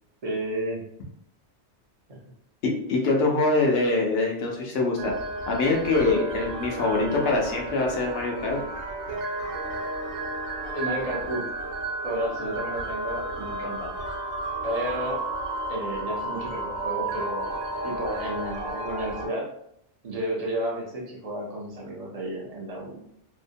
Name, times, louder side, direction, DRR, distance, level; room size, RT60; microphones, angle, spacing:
voice 1, 0.2-0.8 2.1-2.2 10.7-11.4 12.0-13.9 14.6-15.3 15.7-17.6 17.8-19.5 20.0-23.0, right 1 dB, 40° right, -3 dB, 0.6 m, -32 dB
voice 2, 2.6-5.1 5.5-8.6, left 3 dB, 65° left, 0 dB, 0.8 m, -24 dB
sound 1, 5.0-19.3, right 2 dB, 90° right, 1.0 m, -32 dB
2.7 x 2.1 x 2.6 m, 0.76 s
omnidirectional pair, 1.2 m